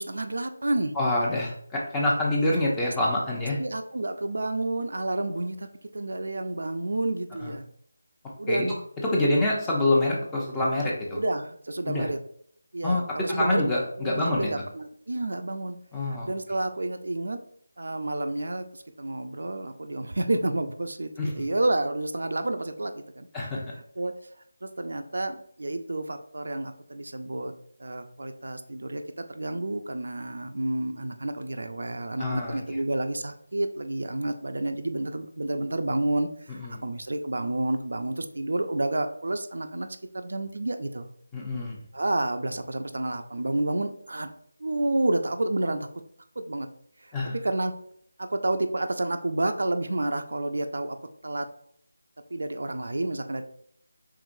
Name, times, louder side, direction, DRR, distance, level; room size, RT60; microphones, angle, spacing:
voice 1, 0.0-0.9 3.6-5.7 5.9-7.6 8.4-8.8 11.1-12.2 12.7-13.7 14.0-15.8 16.0-17.4 17.8-23.3 23.7-24.1 24.6-27.5 27.8-39.9 40.1-41.1 41.9-44.3 44.6-45.9 46.4-46.7 47.2-47.7 48.2-51.0 51.2-51.5 52.3-53.4, right 2 dB, 70° right, 7 dB, 0.5 m, -30 dB
voice 2, 1.0-3.6 7.4-7.5 8.5-8.6 9.1-11.2 11.9-12.1 12.8-13.0 13.3-13.8 14.0-14.5 15.9-16.3 21.2-21.3 23.3-23.6 32.2-32.6 36.6-36.8 41.3-41.8 47.1-47.3, left 1 dB, 10° left, -3 dB, 0.7 m, -26 dB
4.7 x 3.6 x 2.6 m, 0.64 s
figure-of-eight pair, 165°, 0 cm